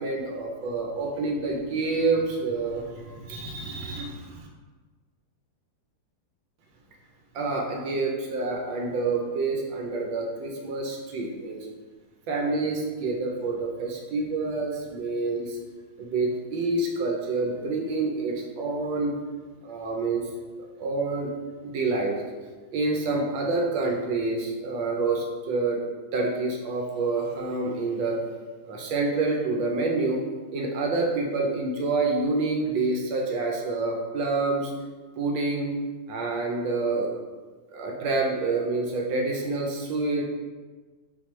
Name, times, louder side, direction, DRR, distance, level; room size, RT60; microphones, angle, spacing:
voice 1, 0.0-4.5 7.3-11.7 12.3-15.6 16.0-19.1 19.6-20.2 20.6-21.3 21.6-22.2 22.7-25.8 26.1-28.2 28.6-30.2 30.5-34.7 35.2-35.7 36.1-37.1 37.7-40.2, right 3 dB, 75° right, 0 dB, 1.3 m, -27 dB
4.4 x 3.6 x 3.0 m, 1.4 s
omnidirectional pair, 2.2 m